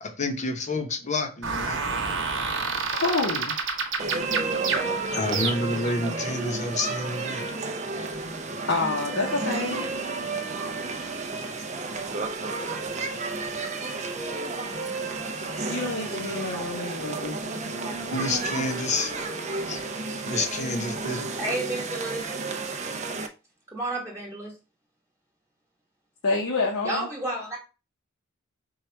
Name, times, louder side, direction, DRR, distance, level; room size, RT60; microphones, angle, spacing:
voice 1, 0.0-1.8 5.1-7.4 18.1-19.2 19.6-19.8 20.1-21.3, left 2 dB, 35° left, 0.9 m, -29 dB
sound 1, 1.4-5.9, right 4 dB, 65° right, 1.1 m, -29 dB
voice 2, 2.9-3.6 8.7-9.8 15.7-17.6 26.2-27.1, left 3 dB, 75° left, 0.9 m, -28 dB
sound 2, 4.0-23.3, right 3 dB, 35° right, 0.5 m, -32 dB
voice 3, 21.4-22.3 23.7-24.6 26.8-27.6, right 2 dB, 15° right, 1.2 m, -31 dB
4.7 x 2.4 x 4.4 m
head